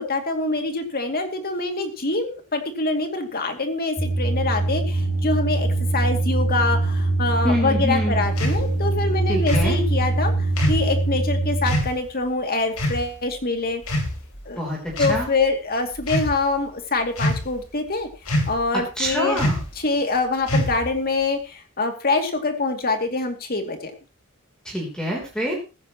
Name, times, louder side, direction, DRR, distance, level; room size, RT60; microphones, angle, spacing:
voice 1, 0.0-10.3 10.7-13.8 14.5-14.6 15.0-18.1 18.5-19.4 19.8-23.9, left 3 dB, 45° left, 5 dB, 2.5 m, -25 dB
sound 1, 4.0-11.8, right 2 dB, 15° right, 7.2 m, -23 dB
voice 2, 7.4-8.2 9.3-9.8 14.5-15.3 19.0-19.6 24.6-25.5, equal, 5° left, -2 dB, 3.4 m, -26 dB
sound 2, 8.4-8.6 9.5-9.7 10.6-10.9 11.7-11.9 12.8-13.0 13.8-14.4 14.9-15.2 16.0-16.3 17.2-17.6 18.3-18.7 19.4-19.7 20.5-20.9, left 1 dB, 75° left, 3.5 m, -24 dB
15.5 x 14.5 x 3.0 m, 0.31 s
head